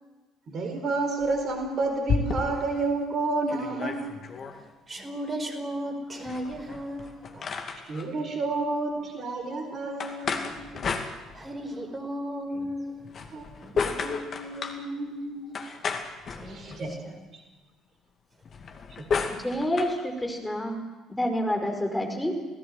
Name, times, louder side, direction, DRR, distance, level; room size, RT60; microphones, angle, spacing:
voice 1, 0.5-4.0 7.9-10.6 13.3-13.4 13.7-15.6 16.4-17.0 19.0-19.1, right 3 dB, 45° right, 5 dB, 4.6 m, -30 dB
sound 1, 1.2-2.8 3.2-3.3 3.5-4.6 6.2-8.1 10.0-11.7 13.0-14.8 15.5-17.0 18.4-20.0, left 5 dB, 40° left, 2.3 m, -33 dB
voice 2, 4.3-7.6 10.3-10.4 10.8-10.9 11.3-13.1 13.6-13.7 16.3-17.2, equal, 25° right, 6 dB, 4.9 m, -36 dB
voice 3, 19.4-20.8 21.1-22.3, equal, 5° left, 2 dB, 5.1 m, -28 dB
29.0 x 18.0 x 7.9 m, 1.2 s
figure-of-eight pair, 55°, 0 cm